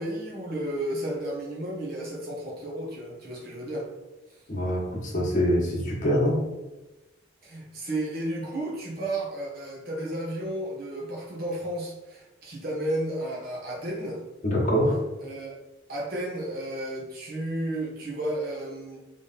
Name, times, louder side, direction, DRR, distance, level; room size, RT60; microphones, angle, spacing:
voice 1, 0.0-3.9 7.4-14.2 15.2-15.5 15.9-19.0, right 1 dB, 50° right, -4 dB, 1.4 m, -32 dB
voice 2, 4.5-6.4 14.4-14.9, equal, 40° left, -3 dB, 1.3 m, -24 dB
3.6 x 3.4 x 4.2 m, 1.0 s
head